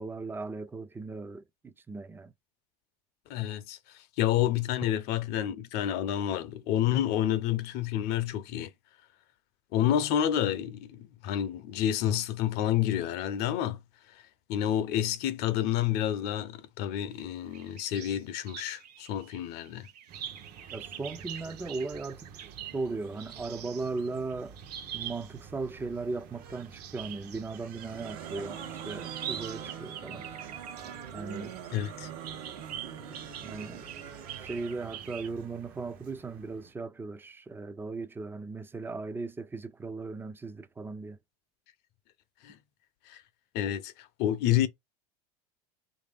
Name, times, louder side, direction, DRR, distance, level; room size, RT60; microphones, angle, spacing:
voice 1, 0.0-2.3 20.7-24.6 24.9-30.3 31.1-31.6 33.4-33.9 34.4-41.2, right 3 dB, 10° right, 0.4 m, -37 dB
voice 2, 3.3-8.7 9.7-13.8 14.5-19.9 31.7-32.1 42.4-42.6 43.1-43.2 43.5-44.7, left 11 dB, 55° left, 0.6 m, -29 dB
sound 1, 17.5-18.2 18.5-25.4 26.5-31.9 32.2-35.3, right 10 dB, 90° right, 0.6 m, -44 dB
sound 2, 20.1-36.7, right 6 dB, 45° right, 0.7 m, -51 dB
sound 3, 27.7-35.1, right 8 dB, 70° right, 1.0 m, -43 dB
3.3 x 2.6 x 3.4 m
supercardioid pair, 105°, 20 cm